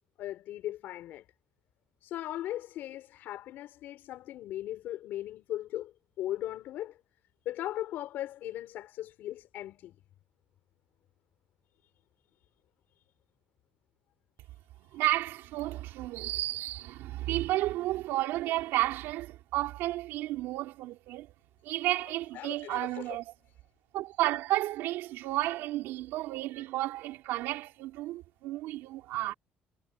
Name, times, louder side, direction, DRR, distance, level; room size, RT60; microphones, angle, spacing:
voice 1, 0.2-1.3 2.0-7.0 7.5-10.0 22.0-23.2, left 13 dB, 60° left, 5.1 m, -38 dB
voice 2, 14.9-21.3 21.6-23.3 23.9-29.3, right 16 dB, 85° right, 3.5 m, -32 dB
cardioid pair, 170°, 4 cm